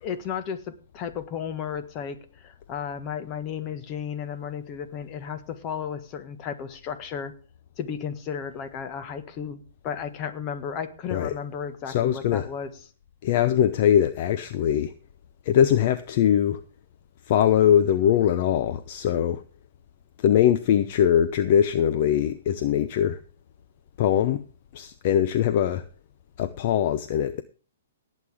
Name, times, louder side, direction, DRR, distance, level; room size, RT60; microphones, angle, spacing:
voice 1, 0.0-2.2 2.4-7.3 7.8-12.7, left 7 dB, 30° left, 1.6 m, -34 dB
voice 2, 11.9-12.5 13.2-14.9 15.4-16.6 17.3-19.4 20.2-23.2 24.0-24.4 24.7-25.8 26.4-27.4, left 10 dB, 45° left, 0.8 m, -22 dB
18.5 x 8.3 x 3.6 m
hypercardioid pair, 145°, 0 cm